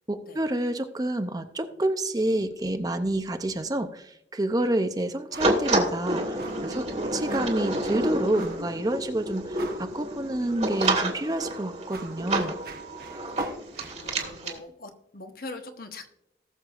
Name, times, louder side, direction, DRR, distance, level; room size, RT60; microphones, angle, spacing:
voice 1, 0.1-12.6, right 1 dB, 20° right, 8 dB, 0.6 m, -28 dB
sound 1, 5.3-5.6 5.9-6.0 6.4-6.7 7.3-7.6 8.3-8.7 9.1-9.2 9.5-10.1 10.8-11.1 11.5-14.4, right 4 dB, 55° right, 1.0 m, -45 dB
sound 2, 5.4-14.6, right 1 dB, 40° right, 1.7 m, -29 dB
voice 2, 13.9-16.1, left 2 dB, 55° left, 6 dB, 1.1 m, -42 dB
19.0 x 6.7 x 2.5 m, 0.82 s
head